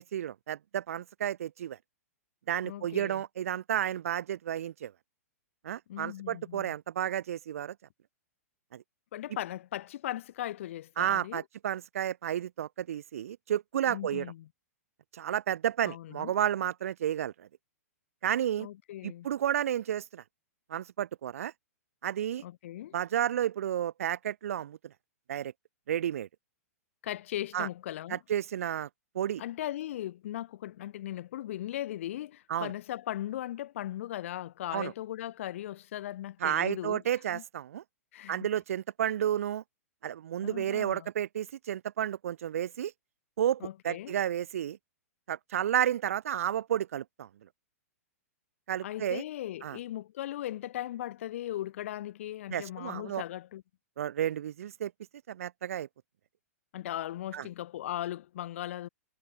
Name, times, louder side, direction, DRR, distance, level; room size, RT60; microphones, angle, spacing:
voice 1, 0.0-1.8 2.5-4.9 5.6-7.7 8.7-8.8 11.0-14.3 15.1-17.5 18.2-18.7 19.0-20.2 20.7-21.5 22.0-22.4 22.9-24.9 25.3-25.5 25.9-26.3 27.5-27.7 28.1-28.9 29.1-29.4 32.5-32.7 34.7-34.9 36.4-37.8 38.3-39.6 40.0-42.9 43.4-44.8 45.3-47.5 48.7-49.2 49.6-49.8 52.5-53.2 54.0-54.9 55.3-55.9 57.3-57.5, right 10 dB, 65° right, 0.5 m, -31 dB
voice 2, 2.6-3.2 5.9-6.7 9.1-11.4 13.9-14.5 15.8-16.4 18.6-19.3 22.4-22.9 27.0-28.2 29.4-37.0 37.3-37.4 38.1-38.5 40.4-41.1 43.6-44.2 48.8-53.6 56.7-58.9, left 13 dB, 55° left, 0.9 m, -38 dB
figure-of-eight pair, 110°, 8 cm